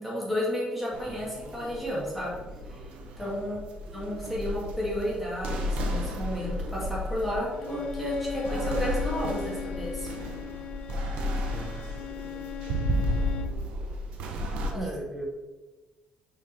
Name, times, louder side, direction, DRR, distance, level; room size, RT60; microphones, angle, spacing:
voice 1, 0.0-2.4 2.7-2.8 3.2-3.6 3.9-10.1 14.7-14.9, equal, 5° right, -6 dB, 2.1 m, -32 dB
sound 1, 0.9-14.7, equal, 80° right, 1.0 m, -33 dB
voice 2, 3.2-3.6 11.5-11.8 14.7-15.3, right 1 dB, 25° right, 1 dB, 1.3 m, -40 dB
Bowed string instrument, 7.5-13.6, left 10 dB, 50° left, 0.3 m, -39 dB
6.1 x 5.1 x 4.6 m, 1.2 s
cardioid pair, 155°, 2 cm